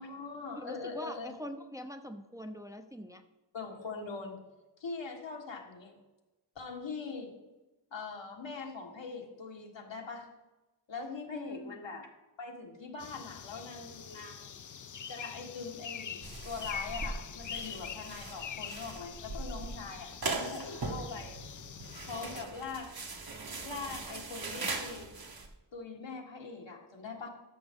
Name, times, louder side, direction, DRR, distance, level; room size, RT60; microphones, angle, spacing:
voice 1, 0.0-1.4 3.5-4.4 4.8-6.0 6.6-7.3 7.9-10.3 10.9-12.1 12.4-14.5 15.1-21.4 22.1-22.9 23.6-25.1 25.7-27.3, left 4 dB, 80° left, 1 dB, 1.6 m, -42 dB
voice 2, 0.5-3.2 11.3-11.8, equal, 10° right, 6 dB, 0.6 m, -43 dB
sound 1, 13.0-22.4, left 7 dB, 45° left, 0.5 m, -44 dB
sound 2, 16.2-25.5, right 3 dB, 55° right, 1.3 m, -40 dB
13.0 x 6.3 x 3.7 m, 1.1 s
wide cardioid pair, 80°, 44 cm